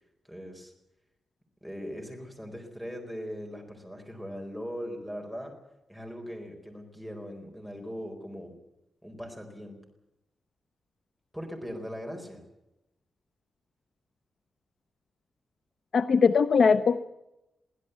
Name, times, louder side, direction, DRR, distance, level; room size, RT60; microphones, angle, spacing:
voice 1, 0.3-0.7 1.6-5.5 5.9-8.5 9.0-9.8 11.3-12.4, equal, ahead, 2 dB, 4.4 m, -40 dB
voice 2, 15.9-17.0, left 5 dB, 50° left, 10 dB, 0.7 m, -21 dB
23.0 x 16.0 x 8.2 m, 0.90 s
wide cardioid pair, 170°, 0 cm